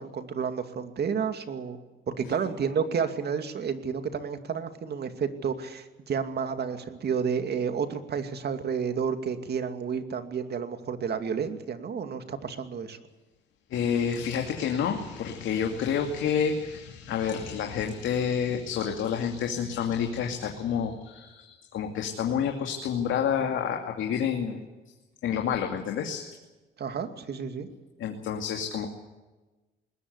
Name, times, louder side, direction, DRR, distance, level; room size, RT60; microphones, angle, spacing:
voice 1, 0.0-1.8 2.1-13.0 26.8-27.7, right 6 dB, 55° right, 8 dB, 2.5 m, -31 dB
voice 2, 13.7-24.6 25.2-26.2 28.0-28.9, left 7 dB, 80° left, 3 dB, 2.5 m, -29 dB
21.0 x 19.5 x 8.1 m, 1.2 s
cardioid pair, 90°, 20 cm